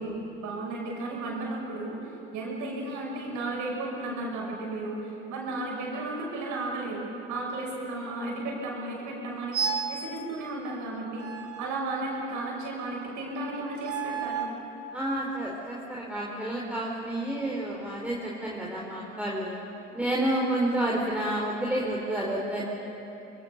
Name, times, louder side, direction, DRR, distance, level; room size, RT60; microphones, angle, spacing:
voice 1, 0.0-7.0 7.3-9.6 9.9-11.3 11.6-14.5, right 2 dB, 70° right, -2 dB, 6.3 m, -34 dB
sound 1, 9.5-10.0 11.2-12.4 13.8-14.6, right 6 dB, 45° right, 2.4 m, -33 dB
voice 2, 14.9-19.6 19.9-22.7, right 1 dB, 5° right, -4 dB, 4.1 m, -30 dB
25.5 x 21.5 x 6.7 m, 3.0 s
hypercardioid pair, 55°, 31 cm